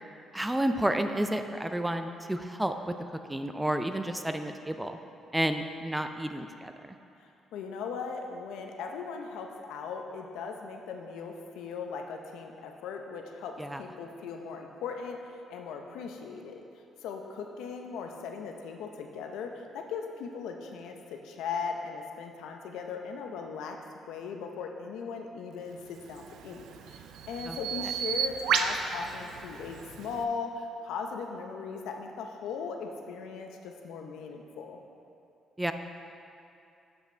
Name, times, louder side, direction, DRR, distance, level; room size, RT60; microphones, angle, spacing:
voice 1, 0.3-2.7 3.3-5.0 5.3-6.7 13.6-13.8 27.5-27.6 35.6-35.7, right 1 dB, 10° right, 7 dB, 0.4 m, -30 dB
voice 2, 7.2-15.2 15.5-16.6 17.0-23.8 24.1-34.8, left 5 dB, 90° left, 3 dB, 0.7 m, -38 dB
Bird vocalization bird call bird song, 26.0-30.2, right 7 dB, 85° right, 0.4 m, -33 dB
8.0 x 5.8 x 4.4 m, 2.7 s
cardioid pair, 90°, 0 cm